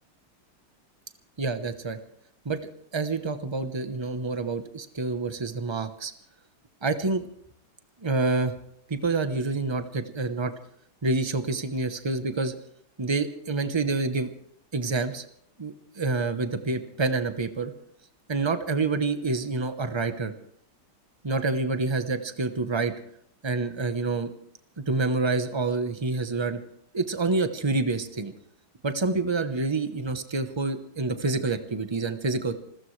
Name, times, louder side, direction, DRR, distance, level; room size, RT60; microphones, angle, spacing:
voice 1, 1.4-2.0 2.4-6.1 6.8-7.2 8.0-8.5 8.9-10.5 11.0-12.5 13.0-14.3 14.7-15.2 15.6-17.7 18.3-20.3 21.2-22.9 23.4-24.3 24.9-26.6 26.9-28.3 28.8-32.5, right 3 dB, 35° right, 9 dB, 0.4 m, -27 dB
28.0 x 14.5 x 3.3 m, 0.69 s
omnidirectional pair, 2.2 m